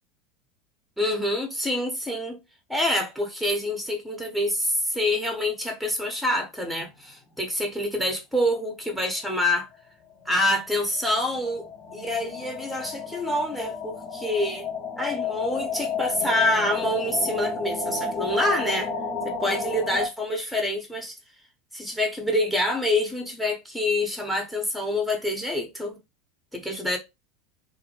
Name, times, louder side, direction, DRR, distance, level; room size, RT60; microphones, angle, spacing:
voice 1, 1.0-2.4 2.7-9.7 10.3-14.7 15.0-18.9 19.2-21.1 21.7-26.0 26.5-27.0, left 1 dB, ahead, 0.8 m, -26 dB
sound 1, 10.3-10.4 10.7-10.8 11.0-20.1, left 4 dB, 40° left, 0.7 m, -32 dB
2.4 x 2.0 x 2.8 m
hypercardioid pair, 80°, 0 cm